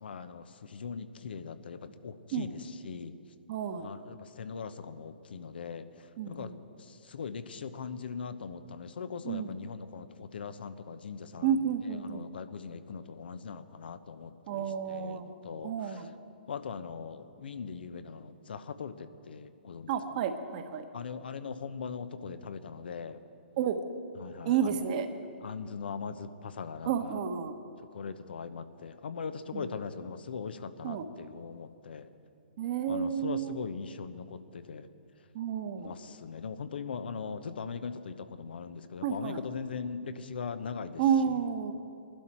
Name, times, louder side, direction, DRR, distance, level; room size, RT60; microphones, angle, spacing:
voice 1, 0.0-3.1 3.8-5.8 6.3-6.5 6.8-11.7 12.0-16.1 16.5-19.9 20.9-23.2 24.2-24.8 25.4-27.2 27.9-32.1 32.9-34.9 35.8-41.4, left 5 dB, 65° left, 11 dB, 1.0 m, -40 dB
voice 2, 3.5-3.9 6.2-6.5 9.2-9.6 11.4-12.3 14.5-15.3 15.6-16.1 19.9-20.8 23.6-23.8 24.4-25.1 26.8-27.5 29.5-29.7 30.8-31.0 32.6-33.5 35.3-35.9 39.0-39.4 41.0-41.7, right 8 dB, 45° right, 7 dB, 1.3 m, -31 dB
21.5 x 12.0 x 4.5 m, 2.5 s
figure-of-eight pair, 130°, 6 cm